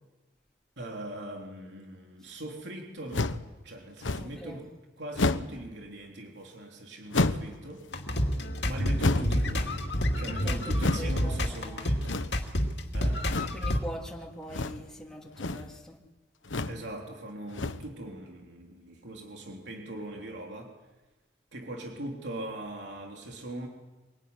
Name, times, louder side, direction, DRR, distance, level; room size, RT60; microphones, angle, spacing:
voice 1, 0.8-3.3 3.6-4.7 5.0-7.9 8.6-9.9 10.2-12.3 12.9-13.3 16.7-20.7 21.5-23.7, right 1 dB, 65° right, 1 dB, 3.6 m, -40 dB
sound 1, 3.1-3.5 4.0-4.4 5.1-5.6 7.1-7.6 9.0-9.5 10.8-11.1 12.0-12.5 13.3-13.6 14.5-14.9 15.3-15.7 16.4-16.8 17.5-17.9, left 2 dB, 90° left, 1.2 m, -30 dB
voice 2, 4.2-4.6 10.2-12.0 13.5-16.0, equal, 5° left, -2 dB, 3.1 m, -43 dB
sound 2, 7.9-13.8, equal, 60° left, 2.5 m, -28 dB
24.0 x 22.5 x 9.8 m, 1.2 s
head